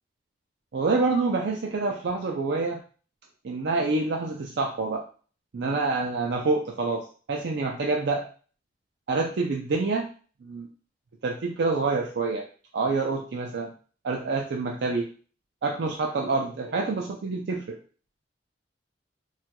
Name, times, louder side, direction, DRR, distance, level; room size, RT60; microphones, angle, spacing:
voice 1, 0.7-2.8 3.4-5.0 5.5-8.2 9.1-10.1 10.4-10.7 11.2-12.4 12.7-13.7 14.0-15.1 15.6-17.8, right 3 dB, 65° right, 0 dB, 0.4 m, -27 dB
4.3 x 2.3 x 2.2 m, 0.39 s
head